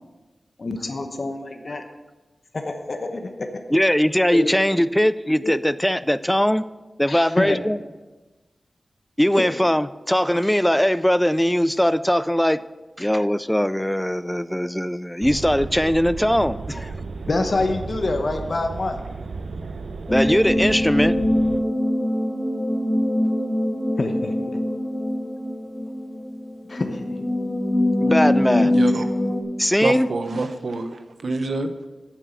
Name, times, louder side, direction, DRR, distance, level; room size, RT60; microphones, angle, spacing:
voice 1, 0.6-1.8 2.5-3.5 4.3-4.5 5.4-5.5 7.1-7.7 9.4-9.5 17.3-19.0 24.0-24.6 26.7-27.1, left 2 dB, 50° left, 5 dB, 1.0 m, -26 dB
voice 2, 3.7-6.6 7.0-7.8 9.2-12.6 13.0-16.9 20.1-21.2 28.0-28.8 29.6-30.1, equal, 5° left, 16 dB, 0.3 m, -20 dB
sound 1, 15.2-21.6, right 4 dB, 90° right, 0.6 m, -34 dB
sound 2, 20.1-29.4, left 1 dB, 20° left, 1.6 m, -23 dB
voice 3, 28.6-29.0 29.8-31.9, right 2 dB, 65° right, 8 dB, 0.9 m, -27 dB
9.0 x 7.4 x 6.8 m, 1.2 s
wide cardioid pair, 100°, 0 cm